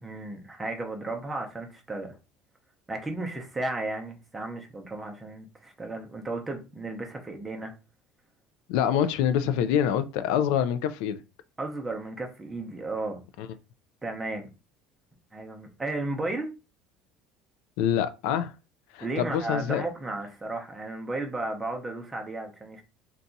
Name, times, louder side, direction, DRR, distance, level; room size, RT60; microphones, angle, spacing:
voice 1, 0.0-2.2 2.9-7.7 11.6-13.2 14.0-14.5 15.3-16.5 19.0-22.8, right 2 dB, 10° right, 0.7 m, -34 dB
voice 2, 8.7-11.2 13.4-13.5 17.8-18.5 18.9-19.9, left 9 dB, 80° left, 0.3 m, -25 dB
2.6 x 2.3 x 3.9 m
cardioid pair, 160°, 0 cm